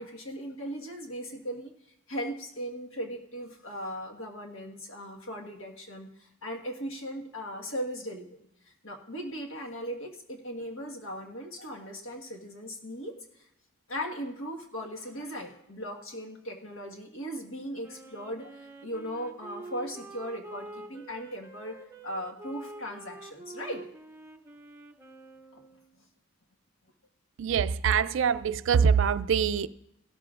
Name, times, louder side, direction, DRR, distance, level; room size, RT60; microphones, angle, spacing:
voice 1, 0.0-1.7 2.1-8.3 8.6-13.5 13.9-23.8 25.5-25.6, equal, 75° left, 1 dB, 1.5 m, -38 dB
Wind instrument woodwind instrument, 17.8-25.9, right 2 dB, 10° right, 0.6 m, -46 dB
voice 2, 27.4-29.7, right 6 dB, 60° right, 14 dB, 0.3 m, -24 dB
16.5 x 12.5 x 2.4 m, 0.80 s
head